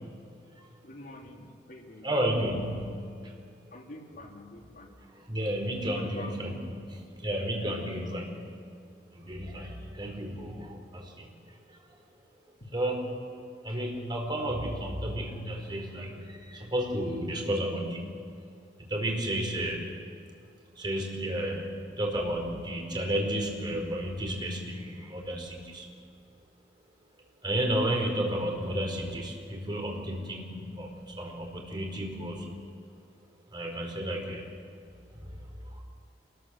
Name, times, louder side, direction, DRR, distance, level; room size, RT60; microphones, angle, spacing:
voice 1, 0.8-2.1 3.7-5.0 6.0-6.4 7.7-8.2 9.5-9.7 12.6-12.7, left 2 dB, 55° left, 0 dB, 3.5 m, -46 dB
voice 2, 2.0-3.3 5.1-6.5 6.9-8.4 9.1-11.3 11.7-11.8 12.7-13.1 13.6-18.1 18.8-19.9 20.8-21.7 22.0-25.9 27.4-32.5 33.5-34.5 35.2-35.4 35.6-35.8, right 1 dB, 25° right, 1 dB, 4.6 m, -32 dB
27.0 x 20.0 x 7.6 m, 2.3 s
head